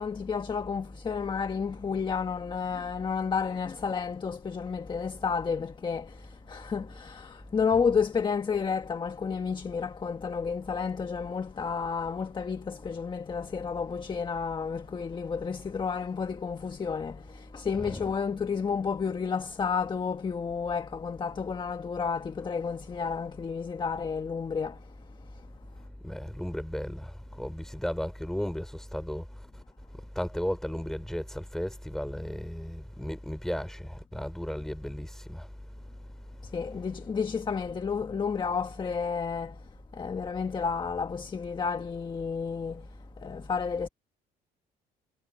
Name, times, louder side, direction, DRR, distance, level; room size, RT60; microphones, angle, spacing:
voice 1, 0.0-25.5 36.4-43.9, left 6 dB, 30° left, 1.4 m, -31 dB
voice 2, 26.0-29.6 30.0-35.5, equal, 5° left, 5.7 m, -35 dB
cardioid pair, 110°, 17 cm